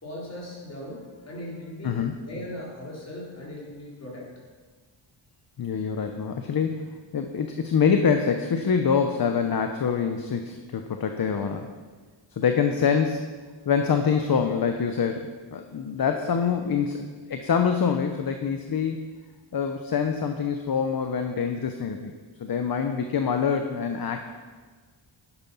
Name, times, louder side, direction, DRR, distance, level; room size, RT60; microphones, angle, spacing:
voice 1, 0.0-2.0 2.2-4.3, left 1 dB, 35° left, -5 dB, 4.3 m, -38 dB
voice 2, 5.6-6.9 7.1-11.7 12.3-13.2 13.7-19.0 19.5-22.1 22.4-24.2, left 6 dB, 50° left, 6 dB, 0.9 m, -25 dB
11.0 x 10.0 x 5.6 m, 1.4 s
wide cardioid pair, 120°, 46 cm